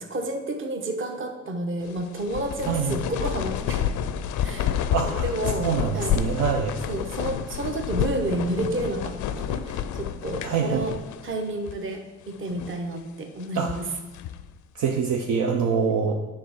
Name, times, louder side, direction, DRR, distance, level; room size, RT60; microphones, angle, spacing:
voice 1, 0.1-3.8 4.4-4.8 5.0-6.2 6.9-10.9 11.2-13.8 15.9-16.0, right 2 dB, 40° right, 4 dB, 1.1 m, -30 dB
sound 1, 1.9-11.4 11.7-11.8 12.4-12.9 13.4-14.5, left 9 dB, 75° left, 0.5 m, -29 dB
voice 2, 2.7-3.0 4.9-5.3 5.6-6.8 10.4-10.8 13.5-13.8 14.8-16.1, right 6 dB, 75° right, 2 dB, 0.8 m, -25 dB
7.8 x 3.5 x 6.3 m, 1.2 s
cardioid pair, 90°, 30 cm